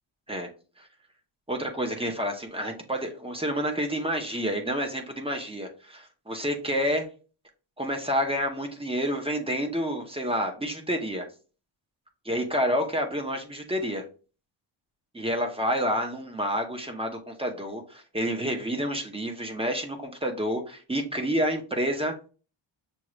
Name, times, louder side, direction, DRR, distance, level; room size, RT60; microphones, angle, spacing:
voice 1, 1.5-7.1 7.8-11.3 12.3-14.0 15.1-22.1, equal, 10° right, 3 dB, 0.7 m, -29 dB
6.3 x 2.4 x 3.0 m, 0.36 s
wide cardioid pair, 140°, 48 cm